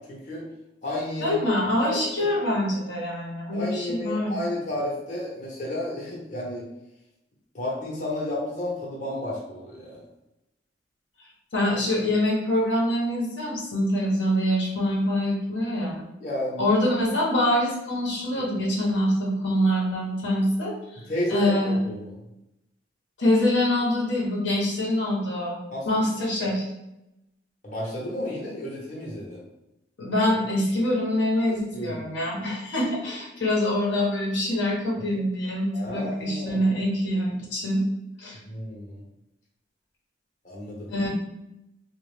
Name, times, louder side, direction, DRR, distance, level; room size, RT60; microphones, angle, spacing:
voice 1, 0.1-0.4 0.8-1.4 1.8-2.3 3.5-6.6 7.5-10.0 16.2-16.6 21.0-22.1 25.7-25.8 26.4-26.5 27.6-29.4 31.4-32.0 35.1-35.2 35.7-36.6 38.4-39.0 40.4-40.9, left 1 dB, 45° left, -5 dB, 1.0 m, -32 dB
voice 2, 1.2-4.4 11.5-16.0 16.6-21.0 21.3-21.8 23.2-25.6 25.9-26.7 30.0-37.8 38.2-38.4 40.9-41.1, left 1 dB, 75° left, -4 dB, 1.0 m, -25 dB
3.6 x 2.4 x 3.5 m, 0.88 s
head